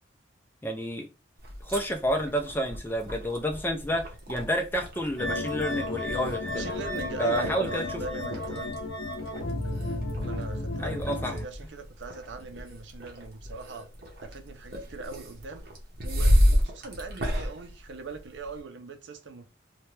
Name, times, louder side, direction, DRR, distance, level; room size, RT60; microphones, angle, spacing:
voice 1, 0.6-1.1 1.6-6.7 7.2-7.9 10.8-11.3, equal, 10° left, 0.4 m, -29 dB
sound 1, 1.4-18.6, equal, 50° right, 0.8 m, -32 dB
sound 2, 5.2-11.4, left 2 dB, 85° left, 0.6 m, -33 dB
voice 2, 6.5-8.7 10.2-13.9 14.2-15.7 16.0-19.5, right 3 dB, 70° right, 0.5 m, -41 dB
2.7 x 2.2 x 3.1 m
head